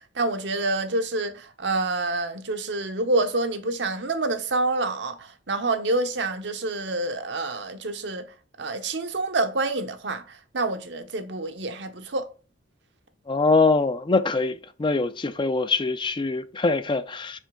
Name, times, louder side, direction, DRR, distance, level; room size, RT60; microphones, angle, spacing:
voice 1, 0.1-8.3 8.6-12.3, right 2 dB, 65° right, 0.9 m, -27 dB
voice 2, 13.3-17.4, left 3 dB, 25° left, 0.4 m, -23 dB
6.2 x 5.0 x 3.8 m
head